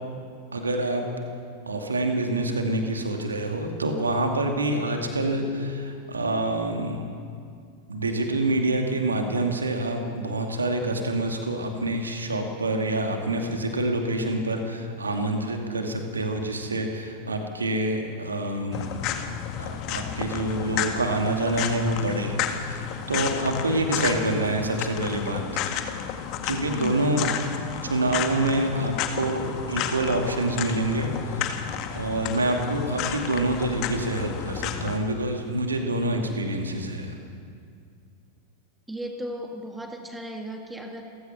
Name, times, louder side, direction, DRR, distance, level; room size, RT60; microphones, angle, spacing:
voice 1, 0.5-1.0 1.7-7.0 7.9-19.0 19.6-25.6 26.4-27.3 27.8-37.2, right 1 dB, 75° right, 3 dB, 2.4 m, -27 dB
sound 1, 18.7-35.0, left 9 dB, 40° left, 1.8 m, -32 dB
voice 2, 26.7-27.0 38.9-41.0, right 1 dB, 5° right, 2 dB, 2.7 m, -35 dB
28.0 x 15.5 x 6.0 m, 2.3 s
figure-of-eight pair, 90°, 0 cm